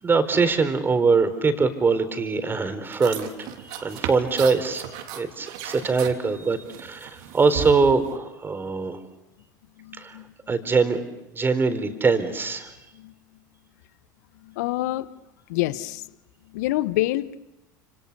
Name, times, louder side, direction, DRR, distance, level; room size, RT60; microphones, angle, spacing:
voice 1, 0.0-4.9 5.2-9.0 10.0-10.2 10.5-11.0 11.3-12.7, right 4 dB, 20° right, 10 dB, 4.4 m, -23 dB
sound 1, 2.8-8.2, right 9 dB, 60° right, 3.5 m, -36 dB
voice 2, 9.8-10.2 12.9-13.1 14.4-15.1 15.5-16.1 16.5-17.4, left 16 dB, 65° left, 15 dB, 1.2 m, -27 dB
29.5 x 28.0 x 7.0 m, 0.96 s
figure-of-eight pair, 75°, 10 cm